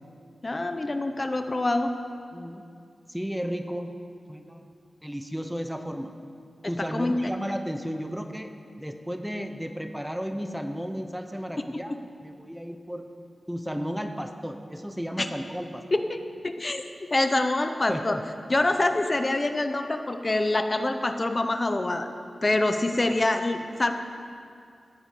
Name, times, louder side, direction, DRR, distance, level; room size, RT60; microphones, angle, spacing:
voice 1, 0.4-1.9 6.9-7.2 15.2-15.3 15.9-16.2 16.4-16.8 17.1-18.2 18.5-22.1 22.4-23.9, left 2 dB, 30° left, 7 dB, 0.8 m, -25 dB
voice 2, 2.3-2.6 3.1-3.9 4.3-4.6 5.0-6.1 6.7-8.5 8.8-11.9 12.2-13.1 13.5-15.8 17.9-18.2, equal, 5° right, 6 dB, 0.7 m, -33 dB
17.0 x 9.9 x 5.0 m, 2.4 s
wide cardioid pair, 95°, 0 cm